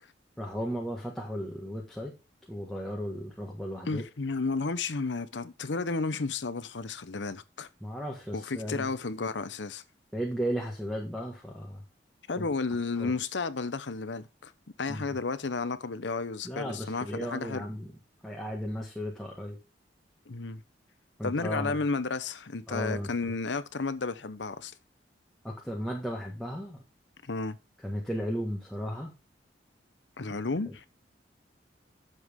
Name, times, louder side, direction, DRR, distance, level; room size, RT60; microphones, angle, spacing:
voice 1, 0.4-2.2 2.5-4.0 7.8-8.9 10.1-11.8 12.4-12.5 13.0-13.1 14.9-15.0 16.4-17.9 18.2-19.6 21.2-21.8 22.7-23.3 25.4-26.8 27.8-29.1 30.7-30.9, equal, ahead, 1.7 m, -35 dB
voice 2, 3.8-7.7 8.3-9.8 12.3-14.5 14.8-17.7 20.3-20.6 21.2-24.7 27.2-27.6 30.2-30.9, left 3 dB, 80° left, 0.9 m, -32 dB
11.0 x 7.1 x 3.7 m
head